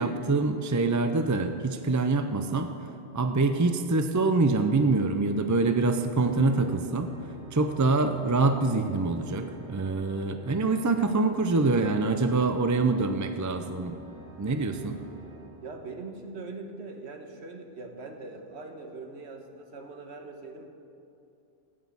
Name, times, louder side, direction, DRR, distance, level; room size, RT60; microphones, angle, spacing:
voice 1, 0.0-2.7 3.1-7.1 7.5-13.9 14.4-15.0, right 3 dB, 30° right, 7 dB, 0.3 m, -25 dB
Organ, 5.4-16.3, right 1 dB, 50° right, 3.1 m, -49 dB
voice 2, 15.6-20.7, right 3 dB, 75° right, 4 dB, 1.4 m, -41 dB
16.0 x 6.2 x 7.1 m, 2.8 s
omnidirectional pair, 1.1 m